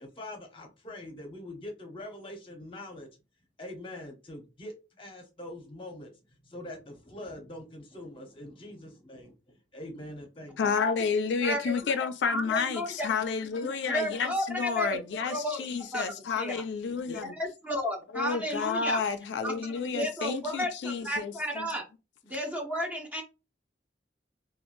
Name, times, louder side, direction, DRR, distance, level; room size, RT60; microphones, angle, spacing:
voice 1, 0.0-3.1 3.6-6.1 6.4-9.3 9.7-10.9, left 1 dB, 30° left, 0.8 m, -43 dB
voice 2, 10.6-17.3 18.1-21.7, left 5 dB, 75° left, 0.3 m, -30 dB
voice 3, 11.4-11.7 12.3-12.9 13.9-15.0 15.3-15.6 15.9-16.1 16.4-16.5 17.1-19.0 19.4-21.8 22.2-23.2, equal, 10° right, 0.7 m, -32 dB
2.9 x 2.3 x 2.5 m
head